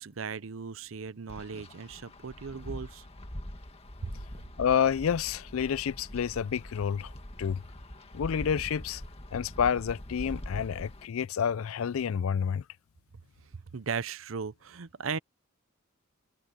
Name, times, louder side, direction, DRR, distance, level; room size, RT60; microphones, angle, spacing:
voice 1, 0.0-3.1 4.0-4.1 13.5-15.2, right 5 dB, 70° right, 0.6 m, -37 dB
Wind, 1.3-11.1, left 1 dB, 30° left, 1.9 m, -43 dB
voice 2, 4.6-7.1 7.4-7.6 8.1-9.0 9.3-12.6, left 7 dB, 80° left, 0.4 m, -29 dB
head